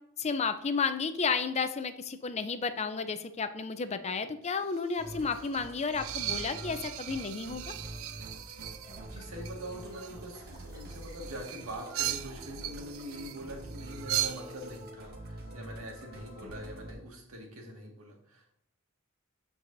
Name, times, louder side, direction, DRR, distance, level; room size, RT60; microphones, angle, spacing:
voice 1, 0.2-7.7, left 5 dB, 30° left, 10 dB, 0.5 m, -32 dB
sound 1, 4.5-14.8, right 12 dB, 70° right, 0.4 m, -39 dB
Musical instrument, 5.0-16.9, right 1 dB, 50° right, 1.4 m, -46 dB
Liquid, 8.5-12.7 13.2-13.3, right 1 dB, 20° right, 3.2 m, -58 dB
voice 2, 9.1-18.6, equal, 90° right, 0 dB, 1.8 m, -43 dB
12.5 x 4.7 x 2.6 m, 0.72 s
head